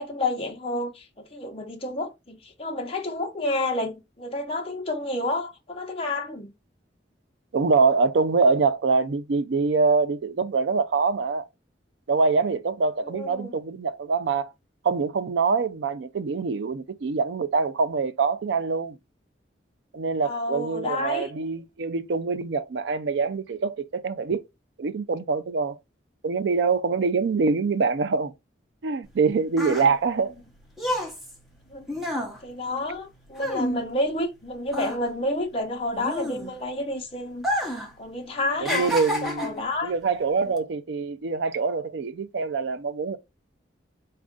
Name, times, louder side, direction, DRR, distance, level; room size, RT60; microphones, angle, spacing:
voice 1, 0.0-6.5 13.0-13.5 20.2-21.3 31.7-32.2 32.4-37.7 38.0-38.9 39.2-39.9, left 2 dB, 30° left, 0.7 m, -30 dB
voice 2, 7.5-11.5 12.1-14.5 14.8-19.0 19.9-24.4 24.8-25.7 26.2-28.3 28.8-30.3 38.6-39.5 39.8-43.2, right 4 dB, 70° right, 0.4 m, -24 dB
sound 1, 29.1-34.4 34.7-36.8 37.3-37.9 38.2-39.7 40.4-40.6, equal, ahead, 0.8 m, -30 dB
4.3 x 2.5 x 3.6 m
head